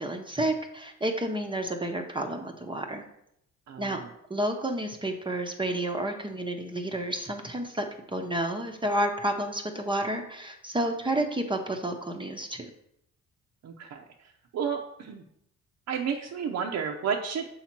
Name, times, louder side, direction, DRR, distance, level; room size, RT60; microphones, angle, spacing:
voice 1, 0.0-3.0 3.8-4.0 4.3-7.9 8.1-12.7, right 1 dB, 15° right, 3 dB, 0.8 m, -30 dB
voice 2, 3.7-4.0 13.6-14.0 14.5-15.2 15.9-17.5, right 7 dB, 60° right, 1 dB, 0.7 m, -31 dB
7.1 x 2.9 x 5.8 m, 0.76 s
cardioid pair, 90°, 30 cm